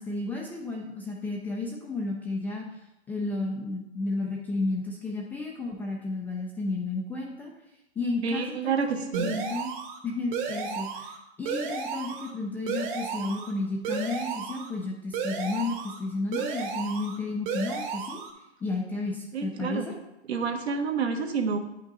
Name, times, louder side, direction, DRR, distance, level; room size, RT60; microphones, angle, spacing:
voice 1, 0.0-2.7 3.1-7.5 8.0-9.7 10.0-18.2 18.6-20.0, left 3 dB, 5° left, -1 dB, 0.3 m, -32 dB
voice 2, 8.2-9.3 19.3-19.9 20.3-21.6, right 5 dB, 70° right, 5 dB, 1.4 m, -28 dB
sound 1, 9.1-10.0 10.3-11.2 11.5-12.3 12.7-13.5 13.8-14.7 15.1-16.0 16.3-17.2 17.5-18.3, right 6 dB, 45° right, 1.4 m, -33 dB
9.4 x 5.4 x 3.8 m, 0.90 s
hypercardioid pair, 125°, 33 cm